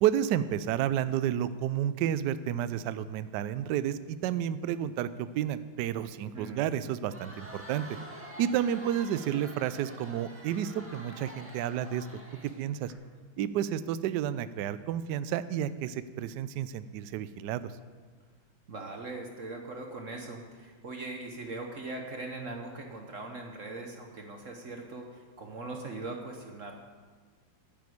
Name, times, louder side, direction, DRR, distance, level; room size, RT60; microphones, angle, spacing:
voice 1, 0.0-8.0 8.4-12.1 12.4-12.9 13.4-17.7, right 10 dB, 90° right, 14 dB, 0.9 m, -31 dB
voice 2, 6.3-6.6 18.7-26.7, right 2 dB, 50° right, 3 dB, 1.0 m, -40 dB
Crowd, 6.9-12.9, equal, 5° right, 1.6 m, -47 dB
9.6 x 8.6 x 8.5 m, 1.5 s
omnidirectional pair, 2.4 m